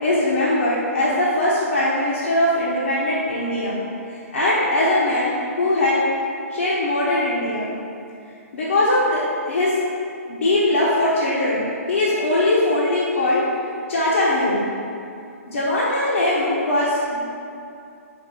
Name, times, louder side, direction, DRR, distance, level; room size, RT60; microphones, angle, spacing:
voice 1, 0.0-3.8 4.1-6.0 6.5-7.7 8.5-9.8 10.3-13.5 13.9-14.7 15.5-17.2, left 1 dB, 60° left, -7 dB, 1.2 m, -21 dB
5.8 x 5.3 x 4.4 m, 2.5 s
figure-of-eight pair, 125°, 8 cm